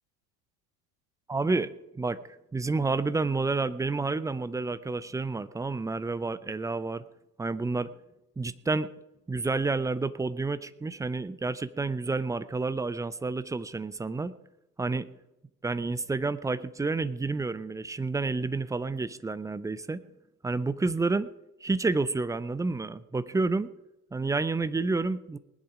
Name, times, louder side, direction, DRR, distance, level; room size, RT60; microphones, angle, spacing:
voice 1, 1.3-2.2 2.5-7.0 7.4-7.9 8.4-8.9 9.3-14.3 14.8-15.2 15.6-20.0 20.4-21.3 21.6-23.7 24.1-25.4, right 3 dB, 5° right, 15 dB, 0.5 m, -29 dB
19.5 x 10.5 x 5.0 m, 0.94 s
figure-of-eight pair, 70°, 49 cm